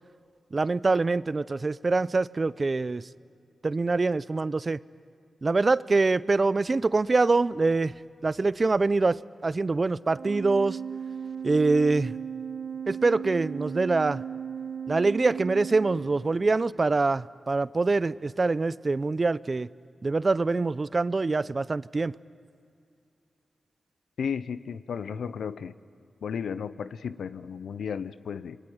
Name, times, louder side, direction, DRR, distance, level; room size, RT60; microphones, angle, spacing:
voice 1, 0.5-3.1 3.6-4.8 5.4-7.9 8.2-10.8 11.4-12.1 12.9-14.2 14.9-19.7 20.0-22.1, right 3 dB, 45° right, 18 dB, 0.6 m, -24 dB
Organ, 10.1-16.6, right 7 dB, 60° right, 3.7 m, -36 dB
voice 2, 24.2-25.7 26.2-28.6, left 7 dB, 85° left, 14 dB, 0.7 m, -34 dB
27.0 x 22.5 x 9.5 m, 2.4 s
cardioid pair, 55°, 0 cm